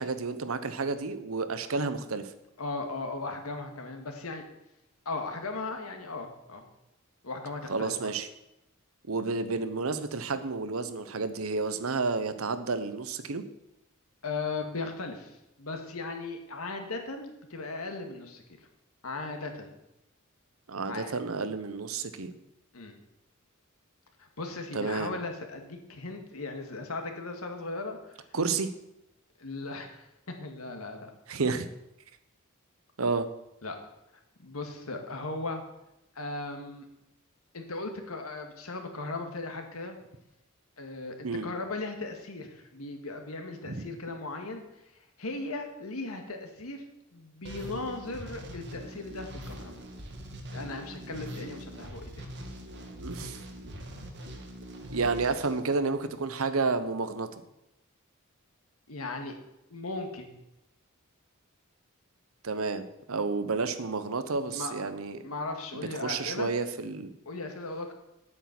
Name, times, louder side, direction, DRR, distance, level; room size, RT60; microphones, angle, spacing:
voice 1, 0.0-2.3 7.7-8.3 9.1-13.4 20.7-22.3 24.7-25.1 28.3-28.7 31.3-31.7 33.0-33.3 41.2-41.5 43.6-43.9 53.0-53.4 54.9-57.3 62.4-65.2 66.0-67.1, right 4 dB, 75° right, 11 dB, 0.9 m, -30 dB
voice 2, 2.6-4.4 5.1-6.7 7.2-8.1 14.2-18.4 19.0-19.7 20.8-21.1 22.7-23.0 24.2-28.2 29.4-31.1 33.6-33.8 34.4-35.6 36.2-36.9 37.5-40.0 40.8-44.6 45.2-46.8 47.1-49.7 50.5-52.3 58.9-59.4 59.7-60.3 64.5-64.9 65.2-66.5 67.3-67.9, left 3 dB, 85° left, 4 dB, 1.8 m, -37 dB
sound 1, 47.4-56.3, equal, 55° right, 1.8 m, -43 dB
9.5 x 8.7 x 6.0 m, 0.88 s
head